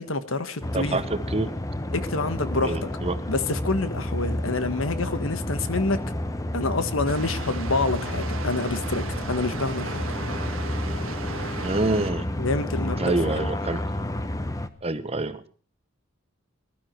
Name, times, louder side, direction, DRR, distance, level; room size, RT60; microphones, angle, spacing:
voice 1, 0.0-1.0 1.9-2.8 3.3-6.0 6.5-10.0 12.4-13.4, left 3 dB, 75° left, 11 dB, 1.4 m, -27 dB
sound 1, 0.6-14.7, left 1 dB, 15° left, 0.9 m, -30 dB
voice 2, 0.7-1.5 2.6-3.1 11.6-12.2 13.0-13.8 14.8-15.5, right 2 dB, 30° right, 11 dB, 1.1 m, -26 dB
Water, 7.1-12.1, right 4 dB, 80° right, 1.6 m, -36 dB
20.5 x 12.5 x 4.5 m, 0.40 s
head